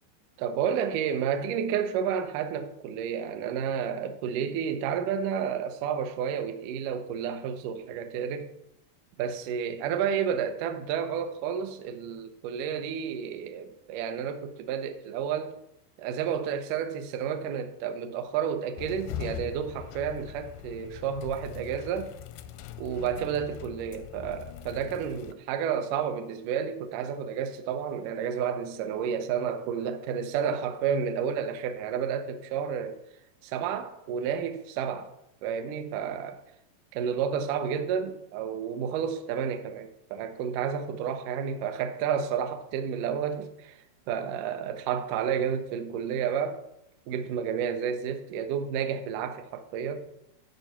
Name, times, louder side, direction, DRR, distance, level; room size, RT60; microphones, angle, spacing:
voice 1, 0.4-8.5 9.2-15.5 16.0-22.1 22.8-33.0 33.4-35.1 35.4-36.4 36.9-46.6 47.1-50.1, right 7 dB, 80° right, 1.8 m, -31 dB
sound 1, 18.8-25.3, left 10 dB, 85° left, 2.6 m, -41 dB
12.0 x 4.5 x 5.9 m
omnidirectional pair, 4.6 m